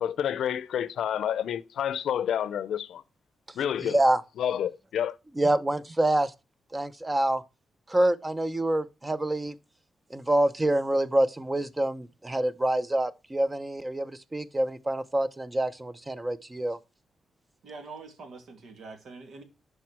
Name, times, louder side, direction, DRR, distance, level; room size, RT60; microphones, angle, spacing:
voice 1, 0.0-3.0 3.6-4.0 4.4-5.2, left 9 dB, 85° left, 0.6 m, -29 dB
voice 2, 3.8-4.2 5.4-6.3 6.7-7.4 7.9-9.5 10.1-16.8, right 1 dB, 20° right, 0.8 m, -26 dB
voice 3, 17.6-19.4, right 4 dB, 75° right, 2.4 m, -44 dB
11.5 x 4.8 x 4.6 m
cardioid pair, 75°, 0 cm